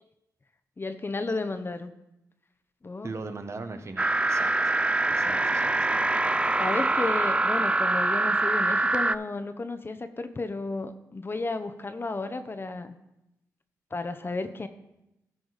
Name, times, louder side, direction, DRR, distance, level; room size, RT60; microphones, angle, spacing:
voice 1, 0.8-1.9 2.8-3.1 6.6-13.0 13.9-14.7, left 3 dB, 35° left, 9 dB, 0.7 m, -33 dB
voice 2, 3.0-4.5 5.1-5.7, right 3 dB, 45° right, 7 dB, 1.1 m, -39 dB
sound 1, 4.0-9.2, right 2 dB, 15° right, 0.4 m, -24 dB
13.5 x 4.8 x 4.1 m, 0.90 s
supercardioid pair, 50°, 7 cm